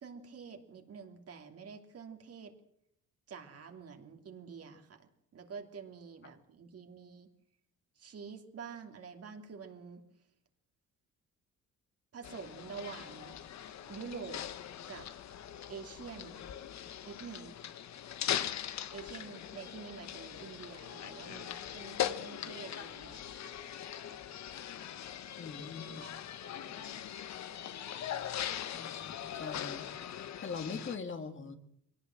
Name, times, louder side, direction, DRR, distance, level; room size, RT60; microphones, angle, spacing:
voice 1, 0.0-2.5 3.3-7.3 8.0-10.0 12.1-13.3 13.9-14.4 14.9-15.1 15.7-16.4 17.0-17.6 18.3-18.4 18.9-23.6 26.0-26.1 26.4-27.0, right 6 dB, 55° right, 5 dB, 2.9 m, -47 dB
sound 1, 12.2-31.0, left 10 dB, 65° left, 1.3 m, -41 dB
voice 2, 25.4-26.1 28.7-31.6, left 5 dB, 40° left, 7 dB, 2.2 m, -42 dB
23.0 x 18.0 x 7.8 m, 0.73 s
cardioid pair, 105°, 29 cm